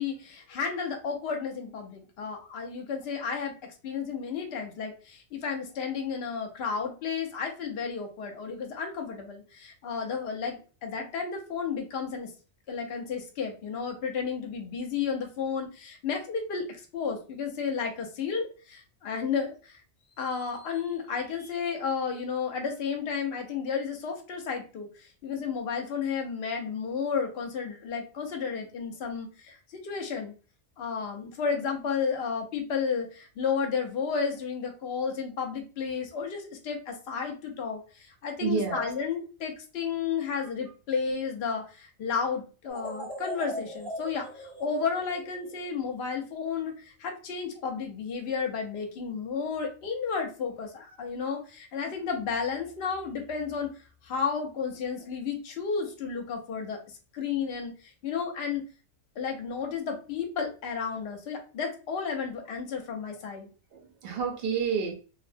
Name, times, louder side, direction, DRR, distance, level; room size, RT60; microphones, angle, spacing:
voice 1, 0.0-3.5 3.8-12.3 12.7-19.8 20.2-30.3 30.8-56.8 57.1-58.6 59.2-63.5, left 6 dB, 60° left, 2 dB, 0.8 m, -32 dB
voice 2, 38.4-38.9 63.7-64.9, right 6 dB, 60° right, 2 dB, 0.7 m, -29 dB
sound 1, 42.7-45.9, equal, 5° left, 0.6 m, -40 dB
2.5 x 2.0 x 2.5 m, 0.36 s
omnidirectional pair, 1.4 m